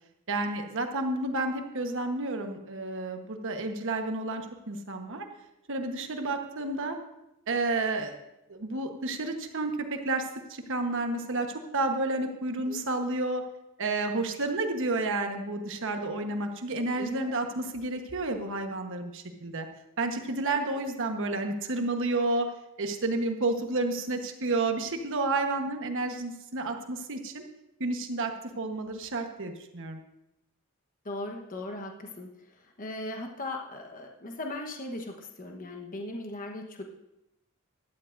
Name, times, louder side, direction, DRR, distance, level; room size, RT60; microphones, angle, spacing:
voice 1, 0.3-5.2 5.7-7.0 7.5-8.1 8.5-13.4 13.8-19.7 20.0-22.5 22.8-27.4 27.8-30.0, right 2 dB, 60° right, 5 dB, 1.2 m, -31 dB
voice 2, 17.0-17.3 31.0-32.3 32.6-36.8, left 2 dB, 40° left, 2 dB, 1.1 m, -38 dB
16.0 x 12.0 x 2.6 m, 0.87 s
head